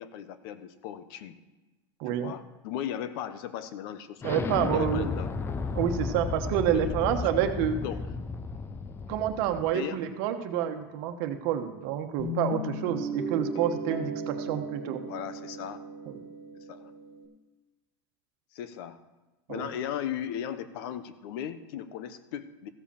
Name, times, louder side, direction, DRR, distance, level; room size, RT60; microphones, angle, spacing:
voice 1, 0.0-1.4 2.1-5.3 6.7-7.4 7.8-8.0 9.0-9.2 9.7-10.0 15.1-15.8 16.7-16.9 18.5-19.0 19.5-22.7, left 10 dB, 65° left, 13 dB, 0.9 m, -37 dB
voice 2, 2.0-2.3 4.2-5.1 5.7-7.8 9.1-15.0 16.1-16.2 19.5-19.7, right 10 dB, 60° right, 7 dB, 1.1 m, -28 dB
Explosion, 4.2-9.7, left 4 dB, 15° left, 0.5 m, -33 dB
Guitar, 12.2-17.2, right 1 dB, 45° left, 2.1 m, -36 dB
15.0 x 5.1 x 6.9 m, 1.1 s
supercardioid pair, 135°, 14 cm